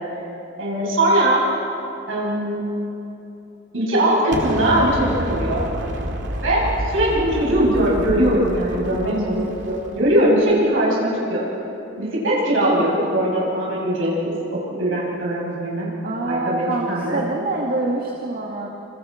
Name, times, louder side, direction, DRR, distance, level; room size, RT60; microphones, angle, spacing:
voice 1, 0.6-1.4 2.1-2.6 3.7-5.7 6.4-11.4 12.0-15.9 16.3-17.2, right 1 dB, 85° right, -6 dB, 7.5 m, -20 dB
Explosion, 4.3-10.3, equal, 65° right, 2.4 m, -29 dB
voice 2, 16.0-18.7, right 2 dB, 50° right, -1 dB, 2.0 m, -25 dB
28.0 x 27.5 x 4.5 m, 3.0 s
head